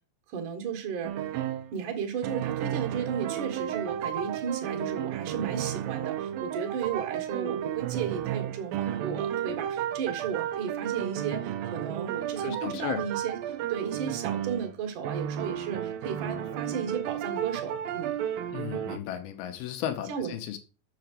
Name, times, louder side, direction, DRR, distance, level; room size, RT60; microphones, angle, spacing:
voice 1, 0.3-18.1 20.1-20.3, right 7 dB, 60° right, 3.0 m, -34 dB
sound 1, 1.0-1.7 2.2-14.7 15.0-19.0, right 10 dB, 80° right, 2.7 m, -33 dB
voice 2, 12.4-13.1 18.5-20.6, left 10 dB, 90° left, 3.0 m, -35 dB
7.2 x 6.9 x 6.7 m
omnidirectional pair, 4.3 m